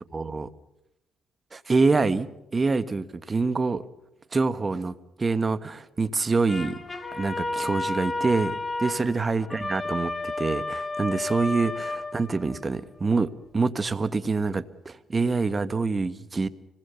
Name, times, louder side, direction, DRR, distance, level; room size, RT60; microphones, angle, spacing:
voice 1, 0.1-0.5 1.5-3.8 4.3-6.8 7.1-16.5, right 4 dB, 30° right, 13 dB, 1.5 m, -26 dB
sound 1, 6.5-12.7, left 2 dB, 20° left, 2.3 m, -32 dB
26.0 x 20.0 x 7.0 m, 0.88 s
cardioid pair, 80°, 0 cm